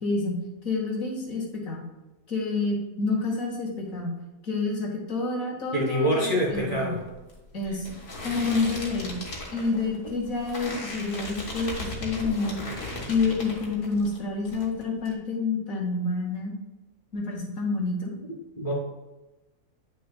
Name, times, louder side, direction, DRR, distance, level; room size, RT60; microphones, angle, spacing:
voice 1, 0.0-0.4 0.6-1.8 2.3-4.1 4.4-6.9 7.5-8.0 8.2-9.2 9.5-12.6 13.1-16.5 17.1-18.1, left 3 dB, 65° left, -1 dB, 2.1 m, -28 dB
voice 2, 5.7-7.0 18.6-18.7, equal, 25° left, -5 dB, 2.5 m, -25 dB
sound 1, 6.4-14.2 14.5-15.1, left 2 dB, 80° left, 2.1 m, -37 dB
9.4 x 6.3 x 2.3 m, 1.1 s
omnidirectional pair, 1.6 m